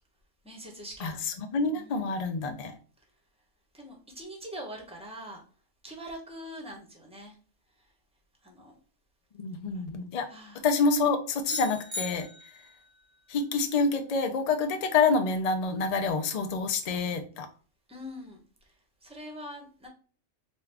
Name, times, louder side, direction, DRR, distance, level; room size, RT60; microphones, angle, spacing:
voice 1, 0.4-1.2 1.7-2.1 3.7-5.4 5.8-7.3 8.4-8.7 10.3-10.7 17.9-18.4 19.0-19.9, equal, 5° right, 0 dB, 0.8 m, -43 dB
voice 2, 1.0-2.7 9.4-10.3 10.6-12.3 13.3-17.5, left 4 dB, 65° left, 6 dB, 0.3 m, -27 dB
sound 1, 11.4-12.9, left 1 dB, 60° right, 1.1 m, -38 dB
4.0 x 2.3 x 3.3 m, 0.40 s
omnidirectional pair, 1.4 m